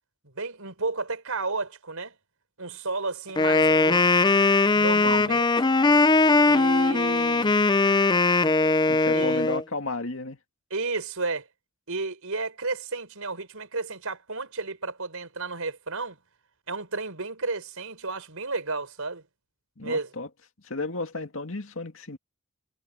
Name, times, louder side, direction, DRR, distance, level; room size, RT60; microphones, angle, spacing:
voice 1, 0.2-2.1 2.6-4.2 4.7-5.6 6.4-7.8 9.1-9.4 10.7-11.5 11.9-16.2 16.7-19.2 19.8-20.1, right 3 dB, 75° right, 4.7 m, -32 dB
Wind instrument woodwind instrument, 3.4-9.6, left 3 dB, 20° left, 0.5 m, -20 dB
voice 2, 5.0-5.4 8.9-10.4 19.8-20.3 20.6-22.2, left 3 dB, 60° left, 2.4 m, -33 dB
head